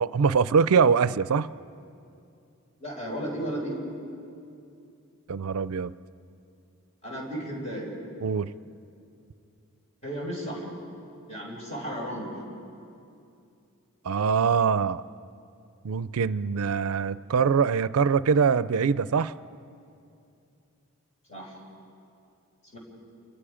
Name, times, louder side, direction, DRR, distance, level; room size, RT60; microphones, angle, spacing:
voice 1, 0.0-1.5 5.3-5.9 8.2-8.5 14.0-15.0 15.8-19.3, right 6 dB, 80° right, 16 dB, 0.4 m, -23 dB
voice 2, 2.8-3.7 7.0-7.9 10.0-10.7 11.3-12.3 21.3-21.5 22.7-22.8, right 1 dB, 30° left, -2 dB, 5.3 m, -34 dB
28.5 x 22.0 x 5.1 m, 2.6 s
head